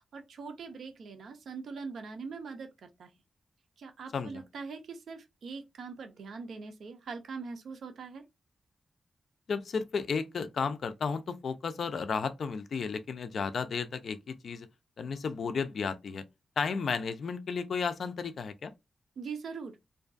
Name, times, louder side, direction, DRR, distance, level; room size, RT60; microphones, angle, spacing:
voice 1, 0.1-3.1 3.8-8.2 19.2-19.8, right 5 dB, 80° right, 0.6 m, -42 dB
voice 2, 9.5-14.7 15.0-16.2 16.6-18.7, left 5 dB, 65° left, 0.4 m, -33 dB
2.5 x 2.3 x 2.4 m
wide cardioid pair, 135°, 0 cm